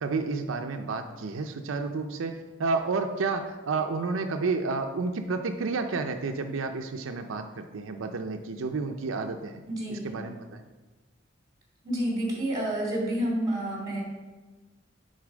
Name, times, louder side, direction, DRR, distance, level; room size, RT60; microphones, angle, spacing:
voice 1, 0.0-9.6 9.9-10.6, right 4 dB, 85° right, 5 dB, 0.5 m, -31 dB
voice 2, 9.7-10.1 11.8-14.0, right 1 dB, 20° right, -3 dB, 2.7 m, -29 dB
9.6 x 4.0 x 5.0 m, 1.2 s
head